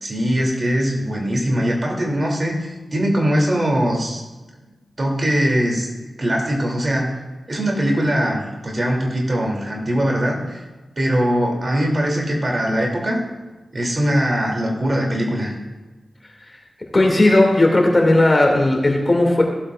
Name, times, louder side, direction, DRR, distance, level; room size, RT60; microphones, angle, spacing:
voice 1, 0.0-4.2 5.0-5.9 6.2-7.1 7.5-10.6 11.0-13.2 13.7-15.5, equal, 45° right, -1 dB, 2.9 m, -21 dB
voice 2, 16.9-19.4, left 2 dB, 35° left, 1 dB, 2.4 m, -15 dB
16.5 x 7.7 x 2.5 m, 1.2 s
cardioid pair, 40°, 0 cm